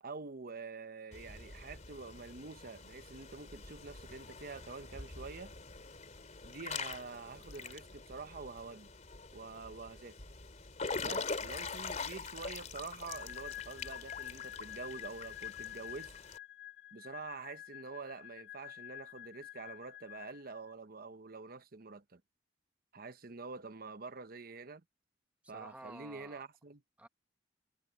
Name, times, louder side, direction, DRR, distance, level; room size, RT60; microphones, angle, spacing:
voice 1, 0.0-5.5 6.4-8.9 9.3-10.2 11.0-16.1 16.9-22.2 22.9-24.8 25.5-26.8, right 4 dB, 55° right, 1.0 m, -47 dB
Water / Splash splatter / Drip, 1.1-16.4, left 4 dB, 40° left, 3.3 m, -44 dB
sound 1, 13.1-20.7, left 14 dB, 65° left, 1.7 m, -48 dB
voice 2, 25.4-26.4 27.0-27.1, right 1 dB, 10° right, 1.7 m, -51 dB
head